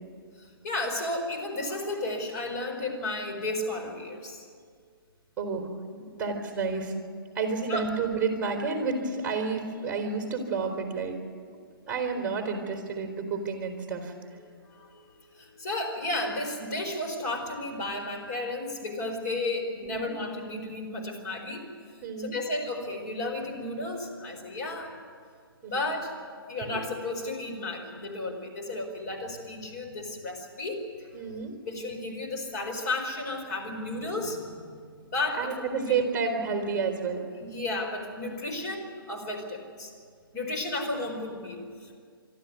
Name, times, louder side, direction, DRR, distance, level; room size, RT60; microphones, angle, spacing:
voice 1, 0.4-4.5 7.7-7.9 14.4-21.6 22.2-24.9 25.7-26.1 26.5-31.2 31.7-34.8 35.1-36.0 37.4-39.9 40.3-42.0, left 2 dB, 45° left, 2 dB, 4.7 m, -33 dB
voice 2, 5.4-6.9 7.3-11.2 11.8-14.1 19.8-20.1 22.0-22.3 25.6-25.8 26.6-26.8 31.1-31.6 35.4-37.2, right 4 dB, 10° right, 1 dB, 3.4 m, -30 dB
24.5 x 13.0 x 9.6 m, 2.1 s
hypercardioid pair, 150°, 12 cm